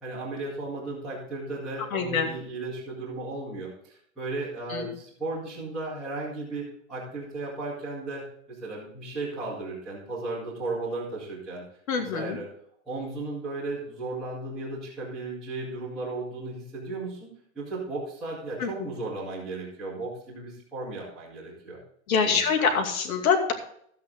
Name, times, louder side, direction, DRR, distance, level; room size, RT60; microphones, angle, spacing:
voice 1, 0.0-8.2 8.5-11.6 11.9-12.5 12.8-17.3 17.5-21.8 22.2-22.4, right 2 dB, ahead, -22 dB, 0.4 m, -35 dB
voice 2, 1.9-2.3 4.7-4.9 11.9-12.4 18.6-18.7 22.1-23.5, left 6 dB, 80° left, 4 dB, 2.5 m, -24 dB
13.0 x 8.7 x 3.8 m, 0.65 s
supercardioid pair, 180°, 41 cm